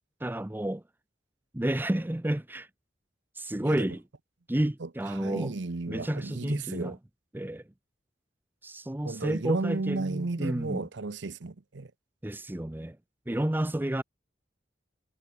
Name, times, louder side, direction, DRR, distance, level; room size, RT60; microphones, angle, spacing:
voice 1, 0.2-0.8 1.5-2.7 3.4-4.0 4.5-5.5 5.9-7.0 7.3-7.6 8.6-10.8 12.2-13.0 13.3-14.0, right 1 dB, 10° right, 0.6 m, -31 dB
voice 2, 5.1-7.0 9.0-11.9, right 3 dB, 70° right, 0.8 m, -33 dB
head